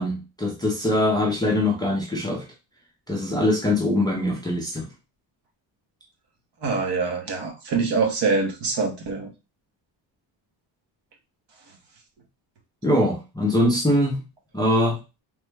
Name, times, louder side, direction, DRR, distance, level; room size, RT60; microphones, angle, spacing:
voice 1, 0.0-2.4 3.1-4.9 12.8-14.2 14.5-15.0, left 1 dB, 10° left, -3 dB, 0.3 m, -22 dB
voice 2, 6.6-9.3, right 4 dB, 60° right, 2 dB, 0.9 m, -24 dB
3.3 x 2.1 x 3.2 m, 0.28 s
cardioid pair, 180°, 45 cm